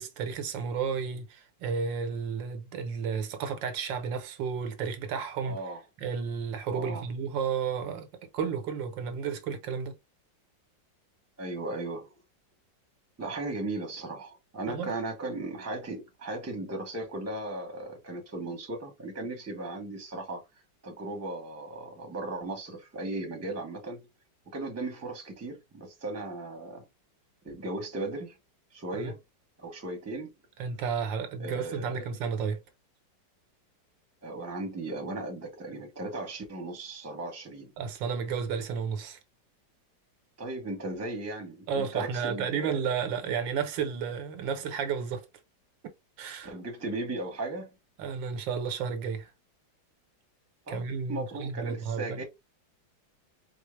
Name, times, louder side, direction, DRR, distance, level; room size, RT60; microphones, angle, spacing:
voice 1, 0.0-5.6 6.0-8.1 8.3-9.9 14.7-14.9 28.9-29.1 30.6-32.6 37.8-39.2 41.7-45.3 46.2-46.5 48.0-49.3 50.7-52.2, right 6 dB, 80° right, 1.5 m, -32 dB
voice 2, 5.4-5.8 6.7-7.0 11.4-12.2 13.2-20.4 20.8-24.0 24.5-26.8 27.4-28.3 28.7-29.2 29.6-30.3 31.4-32.0 34.2-37.7 40.4-42.8 46.4-47.7 50.7-52.2, right 2 dB, 10° right, 0.8 m, -36 dB
4.4 x 2.0 x 3.1 m
omnidirectional pair, 2.0 m